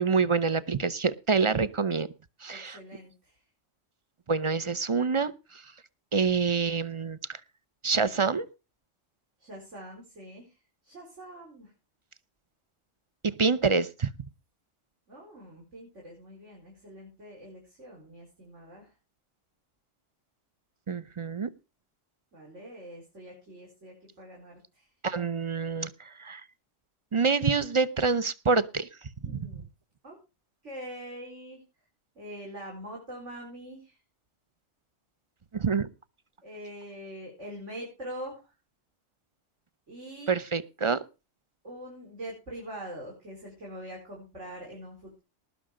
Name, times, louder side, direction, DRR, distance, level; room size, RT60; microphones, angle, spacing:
voice 1, 0.0-2.1 2.4-2.8 4.3-5.3 6.1-7.2 7.8-8.5 13.2-14.1 20.9-21.5 25.0-25.9 26.2-26.4 27.1-28.9 35.5-35.9 40.3-41.0, right 5 dB, 35° right, 18 dB, 0.5 m, -26 dB
voice 2, 2.5-3.4 9.4-10.5 10.8-11.7 15.1-18.9 22.3-24.9 29.2-29.6 30.0-30.2 30.6-31.6 32.2-34.0 36.4-38.4 39.9-40.3 41.6-45.2, equal, 70° right, -2 dB, 5.3 m, -43 dB
19.5 x 6.5 x 5.0 m, 0.31 s
omnidirectional pair, 1.3 m